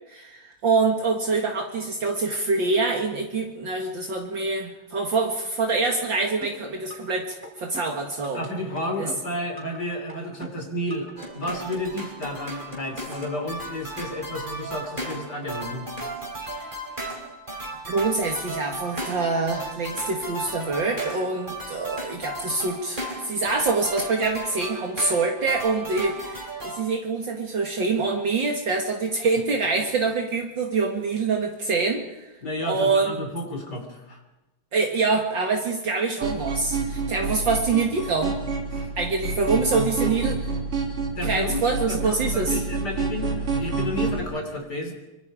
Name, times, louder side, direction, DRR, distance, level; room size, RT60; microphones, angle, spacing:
voice 1, 0.1-8.5 9.0-9.1 17.9-32.3 32.6-33.2 34.7-38.4 39.0-40.4 41.2-42.6, right 3 dB, 60° right, 2 dB, 2.5 m, -25 dB
sound 1, 6.4-7.1 7.4-8.5 8.8-9.8 10.1-11.1 11.4-11.5, equal, 5° right, 5.3 m, -41 dB
voice 2, 8.3-11.1 11.3-15.9 32.4-34.2 38.7-38.9 40.0-40.1 41.2-41.6 41.9-44.9, left 1 dB, 50° left, 3 dB, 3.8 m, -32 dB
sound 2, 11.2-26.8, right 2 dB, 20° right, 4.5 m, -35 dB
sound 3, 36.2-44.2, right 4 dB, 90° right, 4.0 m, -28 dB
24.5 x 24.5 x 5.0 m, 1.0 s
omnidirectional pair, 2.4 m